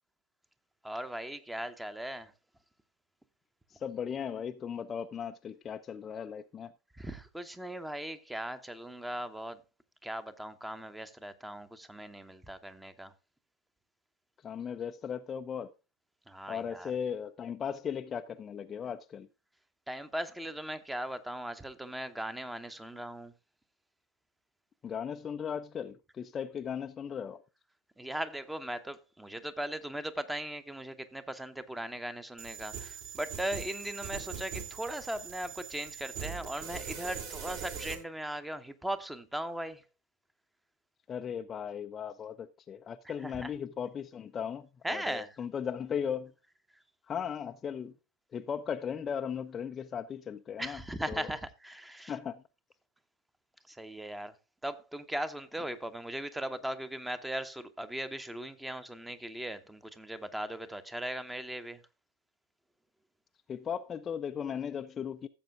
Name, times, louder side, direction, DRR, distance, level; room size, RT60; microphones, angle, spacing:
voice 1, 0.8-2.3 6.9-9.6 10.0-13.1 16.3-16.9 19.9-23.3 28.0-39.8 43.2-43.5 44.8-45.4 50.6-52.1 53.7-54.4 54.6-61.8, right 1 dB, 5° right, 0.9 m, -38 dB
voice 2, 3.7-6.7 14.4-15.7 16.5-19.3 24.8-27.4 41.1-46.3 47.1-47.9 48.3-50.8 51.1-51.3 52.1-52.4 63.5-65.3, left 7 dB, 20° left, 0.4 m, -37 dB
sound 1, 32.4-37.9, right 7 dB, 50° right, 2.5 m, -41 dB
15.5 x 7.6 x 2.3 m
figure-of-eight pair, 90°, 0 cm